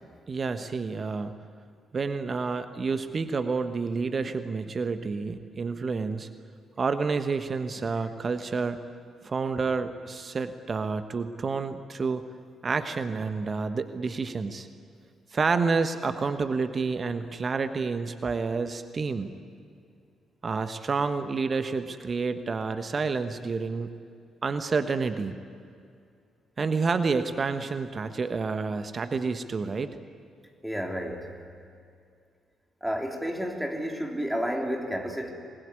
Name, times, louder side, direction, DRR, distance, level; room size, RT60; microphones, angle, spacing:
voice 1, 0.3-1.4 1.9-6.3 6.8-8.8 9.2-12.2 12.6-14.7 15.3-19.3 20.4-23.9 24.4-25.4 26.6-29.9, right 4 dB, 40° right, 10 dB, 1.3 m, -29 dB
voice 2, 30.6-31.3 32.8-35.3, equal, 5° right, 1 dB, 3.5 m, -31 dB
27.0 x 21.0 x 9.7 m, 2.4 s
figure-of-eight pair, 40°, 0 cm